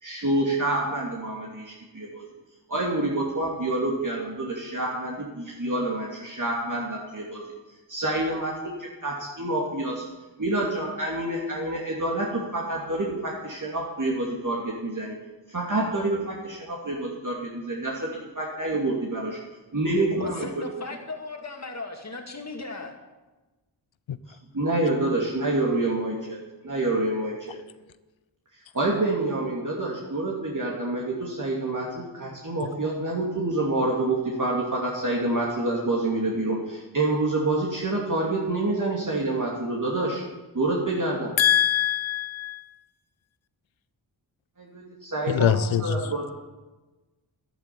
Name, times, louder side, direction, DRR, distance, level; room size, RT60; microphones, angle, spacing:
voice 1, 0.0-2.2 2.7-7.4 7.9-8.5 8.8-10.0 10.4-15.2 15.5-18.1 18.3-19.4 19.7-20.5 24.5-27.6 28.7-40.2 40.5-41.3 44.6-46.3, right 2 dB, 40° right, -3 dB, 2.6 m, -27 dB
voice 2, 20.1-22.9, left 3 dB, 35° left, 3 dB, 2.5 m, -36 dB
voice 3, 41.4-42.6 45.3-46.0, left 9 dB, 80° left, 15 dB, 0.8 m, -23 dB
11.5 x 10.5 x 7.0 m, 1.2 s
cardioid pair, 55°, 45 cm